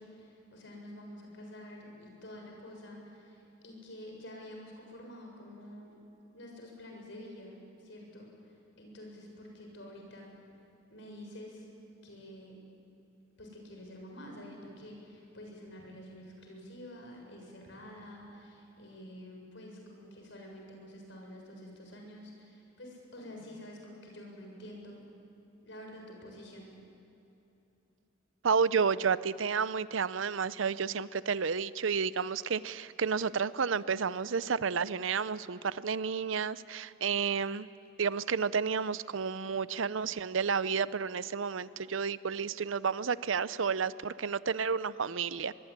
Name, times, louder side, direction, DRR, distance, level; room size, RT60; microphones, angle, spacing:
voice 1, 0.0-5.9 6.3-8.3 8.8-10.3 10.9-11.7 12.0-12.6 13.4-25.0 25.6-26.7, left 1 dB, 65° left, 1 dB, 7.2 m, -48 dB
voice 2, 28.4-37.7 38.0-45.5, right 6 dB, 75° right, 17 dB, 0.7 m, -31 dB
23.5 x 23.0 x 10.0 m, 3.0 s
head